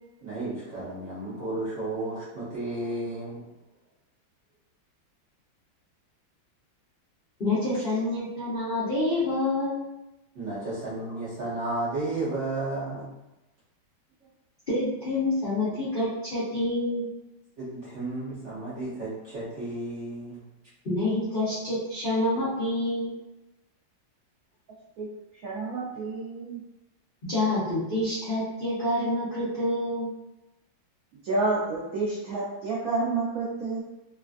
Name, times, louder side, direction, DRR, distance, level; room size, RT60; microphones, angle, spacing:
voice 1, 0.2-3.4 10.3-13.1 17.6-20.4, right 2 dB, 55° right, -10 dB, 0.8 m, -33 dB
voice 2, 7.4-9.8 14.7-17.1 20.8-23.1 27.3-30.1, left 1 dB, 50° left, -12 dB, 0.6 m, -27 dB
voice 3, 25.0-26.6 31.1-33.8, right 3 dB, 90° right, -6 dB, 0.7 m, -30 dB
3.2 x 2.4 x 2.4 m, 0.98 s
omnidirectional pair, 2.1 m